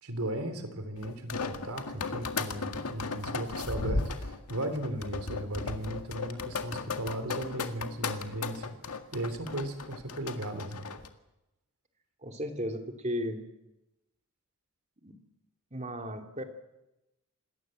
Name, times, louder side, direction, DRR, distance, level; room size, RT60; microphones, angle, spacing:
voice 1, 0.0-10.9, right 1 dB, 80° right, 8 dB, 3.5 m, -36 dB
sound 1, 1.0-11.1, left 4 dB, 90° left, 1.9 m, -36 dB
voice 2, 12.2-13.4 15.0-15.1 15.7-16.4, equal, 30° right, 5 dB, 2.8 m, -35 dB
27.5 x 20.0 x 7.8 m, 0.96 s
head